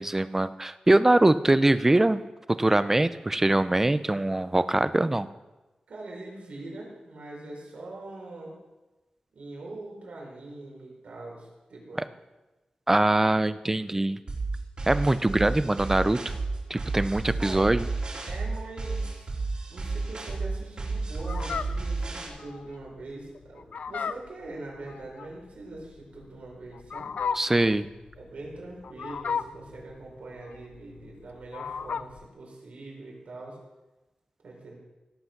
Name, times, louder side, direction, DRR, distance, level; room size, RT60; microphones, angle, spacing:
voice 1, 0.0-2.2 2.6-5.3 12.9-14.2 14.9-16.4 16.7-17.8 27.3-27.9, right 2 dB, 15° right, 14 dB, 0.5 m, -23 dB
voice 2, 5.9-8.6 9.3-12.1 17.4-17.6 18.2-19.3 19.7-27.1 28.1-33.6 34.4-34.7, right 2 dB, 75° right, -2 dB, 4.6 m, -42 dB
sound 1, 14.3-22.3, right 3 dB, 45° right, 2.9 m, -32 dB
Fowl, 21.2-32.3, left 6 dB, 90° left, 0.5 m, -36 dB
17.0 x 8.0 x 5.9 m, 1.1 s
wide cardioid pair, 165°, 2 cm